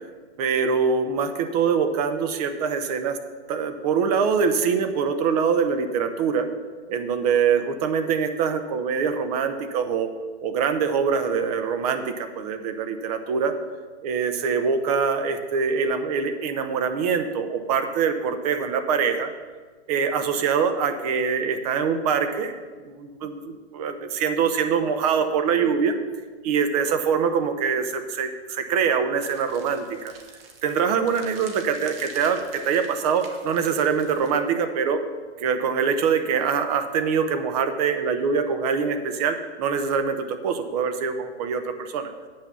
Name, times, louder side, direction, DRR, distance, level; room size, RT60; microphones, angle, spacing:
voice 1, 0.4-3.2 3.5-6.5 6.9-10.1 10.4-13.5 14.0-19.3 19.9-25.9 26.4-30.1 30.6-35.0 35.4-42.1, right 6 dB, 35° right, 8 dB, 0.8 m, -24 dB
sound 1, 29.2-34.4, right 4 dB, 55° right, 1.7 m, -47 dB
8.6 x 6.1 x 6.9 m, 1.4 s
hypercardioid pair, 145°, 35 cm